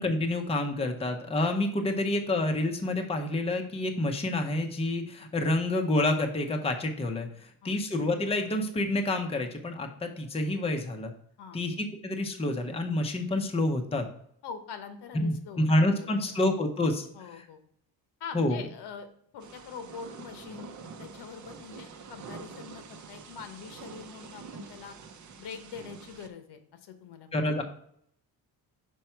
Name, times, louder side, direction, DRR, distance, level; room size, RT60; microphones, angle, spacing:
voice 1, 0.0-11.1 11.5-14.1 15.2-17.1 17.3-17.4 18.3-18.6 27.3-27.6, left 1 dB, 15° left, 4 dB, 0.6 m, -28 dB
voice 2, 14.4-15.7 16.0-16.2 17.1-17.6 18.2-19.1 19.3-25.0 25.4-27.5, left 6 dB, 85° left, 8 dB, 1.0 m, -44 dB
Thunder / Rain, 19.4-26.3, right 5 dB, 45° right, 0.7 m, -46 dB
5.7 x 4.6 x 4.4 m, 0.69 s
cardioid pair, 145°, 40 cm